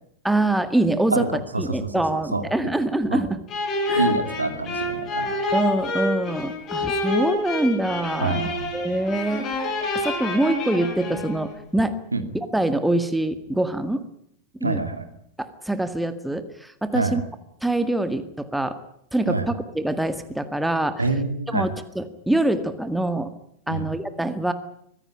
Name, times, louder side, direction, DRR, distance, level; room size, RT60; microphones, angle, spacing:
voice 1, 0.2-1.3 1.6-3.4 3.9-4.1 5.5-8.5 8.7-12.0 12.5-14.0 14.6-14.8 15.4-17.2 17.6-18.8 19.1-21.0 21.5-23.3 23.7-24.5, right 1 dB, 5° right, 10 dB, 1.8 m, -24 dB
voice 2, 1.5-2.4 3.1-3.2 4.0-5.3 8.2-8.7 12.1-12.2 14.6-15.0 16.9-17.2 19.3-19.5 21.0-21.7 23.7-23.9, right 3 dB, 80° right, 8 dB, 2.5 m, -26 dB
sound 1, 3.5-11.5, left 2 dB, 30° left, 5.0 m, -27 dB
23.5 x 16.0 x 9.9 m, 0.70 s
figure-of-eight pair, 90°, 0 cm